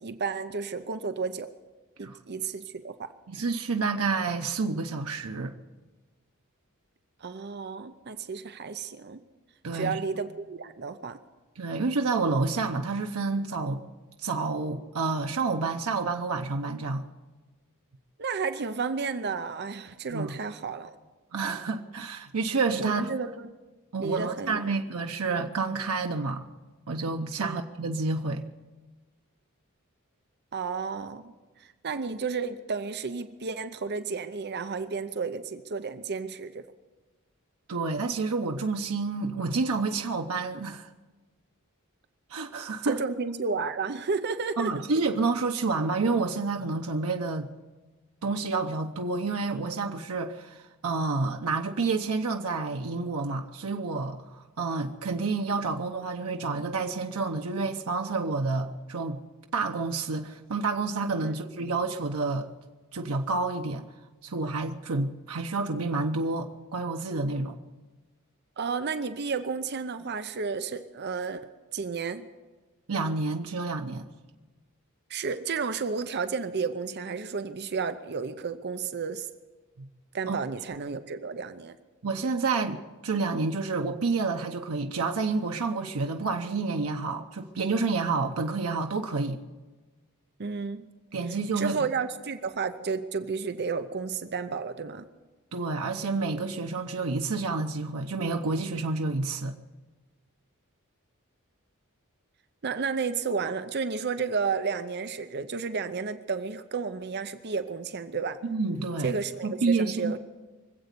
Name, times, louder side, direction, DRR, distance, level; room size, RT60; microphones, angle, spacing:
voice 1, 0.0-1.5 2.0-3.1 7.2-9.2 9.7-11.2 18.2-20.9 22.8-23.5 24.0-24.7 27.4-27.6 30.5-36.6 42.8-44.7 61.2-61.3 68.6-72.3 75.1-79.3 80.1-81.8 90.4-90.9 91.6-95.1 102.6-108.4 109.0-110.2, right 5 dB, 50° right, 10 dB, 0.7 m, -32 dB
voice 2, 3.3-5.5 9.6-10.0 11.6-13.8 14.2-17.0 20.1-20.4 21.3-23.1 23.9-26.4 26.9-28.4 37.7-40.9 42.3-43.0 44.6-47.5 48.2-59.2 59.5-62.5 62.9-63.8 64.2-67.6 72.9-74.1 79.8-79.9 80.3-80.4 82.0-89.4 91.1-91.8 95.5-99.5 108.4-109.1 109.4-110.1, right 3 dB, 85° right, 4 dB, 0.8 m, -29 dB
24.5 x 8.2 x 6.8 m, 1.3 s
head